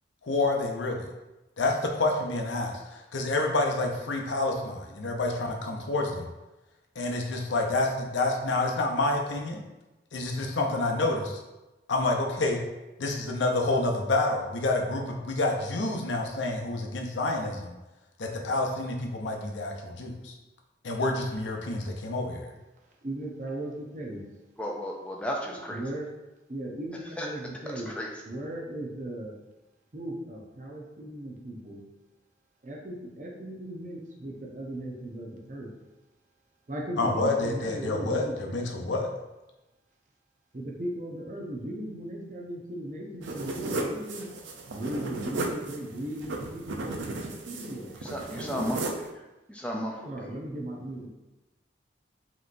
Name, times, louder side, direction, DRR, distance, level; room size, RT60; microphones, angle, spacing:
voice 1, 0.2-1.1 1.6-6.3 7.0-9.6 10.1-11.4 11.9-12.6 13.0-17.7 18.2-20.3 20.8-22.5 37.0-39.1, left 2 dB, 80° left, 1 dB, 0.6 m, -28 dB
voice 2, 23.0-24.2 25.5-26.1 26.5-27.9 28.3-29.4 29.9-31.8 32.6-35.8 36.7-38.6 40.5-44.3 44.7-47.9 48.3-48.8 50.0-51.1, right 1 dB, 40° right, 0 dB, 0.6 m, -37 dB
voice 3, 24.6-25.8 27.2-27.3 27.9-28.1 48.1-48.8 49.5-50.1, equal, 5° left, -1 dB, 0.3 m, -33 dB
sound 1, 43.2-49.1, right 2 dB, 85° right, 0.5 m, -35 dB
5.2 x 3.0 x 2.6 m, 1.0 s
head